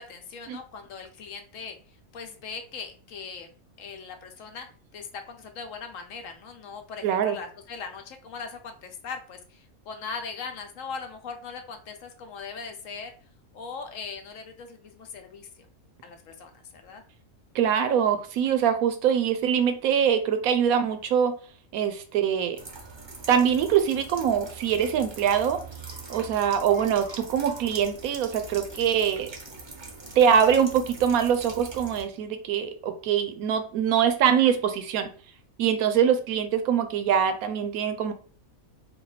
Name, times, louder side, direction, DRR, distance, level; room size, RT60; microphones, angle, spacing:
voice 1, 0.0-1.8 2.1-3.5 3.8-4.7 4.9-13.1 13.5-15.5 16.0-17.0, left 5 dB, 70° left, 5 dB, 1.0 m, -40 dB
voice 2, 7.0-7.4 17.5-21.4 21.7-22.6 23.3-25.6 26.1-29.3 30.2-35.1 35.6-38.1, right 8 dB, 85° right, 9 dB, 1.1 m, -23 dB
sound 1, 22.6-32.0, right 3 dB, 30° right, 0.5 m, -42 dB
3.6 x 2.3 x 3.9 m, 0.40 s
omnidirectional pair, 1.5 m